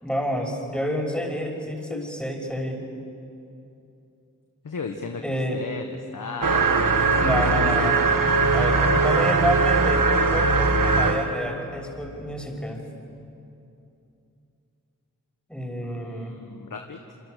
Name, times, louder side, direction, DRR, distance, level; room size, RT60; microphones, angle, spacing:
voice 1, 0.0-2.8 5.2-5.6 7.2-8.0 8.5-12.8 15.5-16.3, equal, 5° left, 1 dB, 6.3 m, -29 dB
voice 2, 4.6-5.2 5.5-5.9 6.1-7.8 8.3-9.0 15.8-17.1, left 4 dB, 85° left, 4 dB, 1.4 m, -36 dB
sound 1, 6.4-11.3, right 4 dB, 90° right, 1.6 m, -20 dB
28.0 x 24.0 x 6.8 m, 2.7 s
cardioid pair, 40°, 32 cm